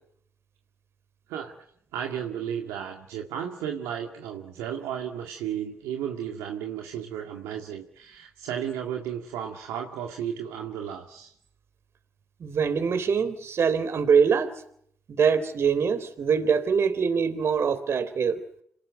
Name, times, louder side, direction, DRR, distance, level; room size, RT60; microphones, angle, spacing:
voice 1, 1.9-11.3, right 9 dB, 90° right, 3 dB, 2.0 m, -34 dB
voice 2, 12.4-14.5 15.1-18.4, right 6 dB, 60° right, 11 dB, 3.6 m, -23 dB
27.0 x 18.5 x 9.4 m, 0.68 s
supercardioid pair, 55°, 5 cm